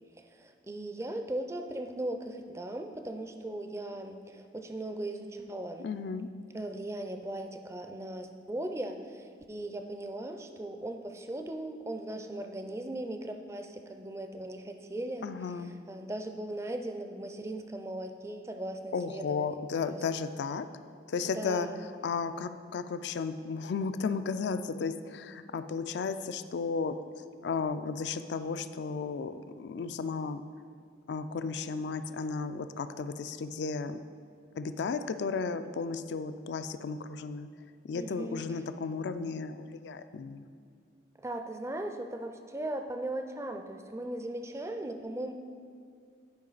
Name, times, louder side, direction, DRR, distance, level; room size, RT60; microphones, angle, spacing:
voice 1, 0.2-5.9 6.5-15.3 15.5-19.6 19.9-20.0 21.2-21.9 37.9-38.5 41.2-45.3, right 1 dB, 15° right, 6 dB, 0.4 m, -38 dB
voice 2, 5.8-6.3 15.2-15.7 18.9-20.7 21.1-21.7 22.0-27.0 27.4-30.4 31.1-34.0 34.6-37.5 37.8-40.5, left 5 dB, 70° left, 11 dB, 0.3 m, -34 dB
10.5 x 5.0 x 4.0 m, 2.2 s
head